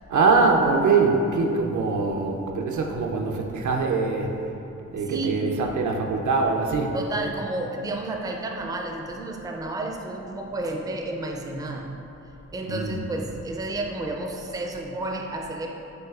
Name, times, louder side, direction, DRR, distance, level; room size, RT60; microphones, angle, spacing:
voice 1, 0.1-4.3 4.9-6.9 12.7-13.0, right 4 dB, 75° right, 2 dB, 0.5 m, -23 dB
voice 2, 5.0-5.4 6.9-11.9 12.5-15.7, right 2 dB, 15° right, 1 dB, 0.4 m, -31 dB
6.2 x 2.6 x 2.4 m, 2.8 s
cardioid pair, 60°, 30 cm